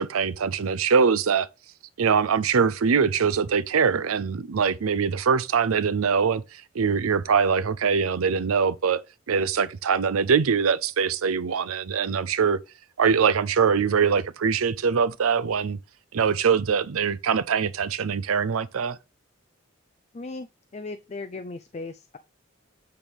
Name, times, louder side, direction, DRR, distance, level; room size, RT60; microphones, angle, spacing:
voice 1, 0.0-1.5 2.0-12.6 13.0-15.8 16.1-19.0, right 6 dB, 90° right, 0.5 m, -23 dB
voice 2, 20.1-20.5 20.7-22.2, left 3 dB, 30° left, 0.3 m, -37 dB
8.7 x 3.3 x 5.3 m
head